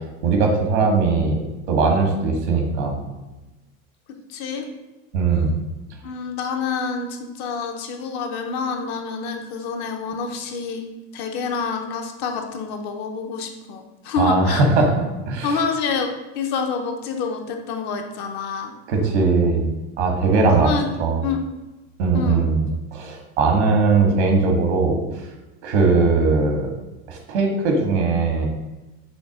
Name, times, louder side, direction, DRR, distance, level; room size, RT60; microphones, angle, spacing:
voice 1, 0.2-3.0 5.1-5.6 14.2-14.9 15.3-15.6 18.9-19.7 20.0-20.7 21.0-21.2 22.0-25.0 25.6-26.7 27.1-28.5, right 4 dB, 85° right, 3 dB, 1.8 m, -19 dB
voice 2, 4.3-4.7 6.0-10.9 11.1-14.6 15.4-16.1 16.3-18.7 20.5-20.9 21.2-21.4 22.1-22.4, left 5 dB, 30° left, 4 dB, 0.5 m, -27 dB
6.3 x 3.4 x 5.9 m, 1.1 s
supercardioid pair, 180°, 33 cm